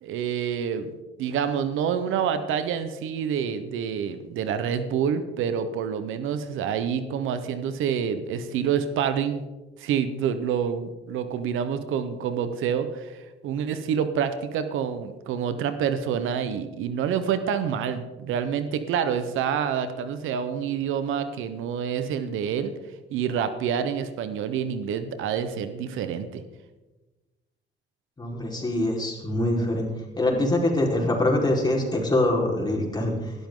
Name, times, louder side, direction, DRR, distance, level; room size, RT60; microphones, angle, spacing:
voice 1, 0.0-0.9 1.2-9.4 9.8-22.7 23.1-26.4, right 7 dB, 90° right, 11 dB, 1.1 m, -27 dB
voice 2, 28.2-29.9 30.2-33.3, left 1 dB, 20° left, -1 dB, 4.7 m, -24 dB
18.0 x 12.5 x 3.9 m, 1.1 s
cardioid pair, 90°, 20 cm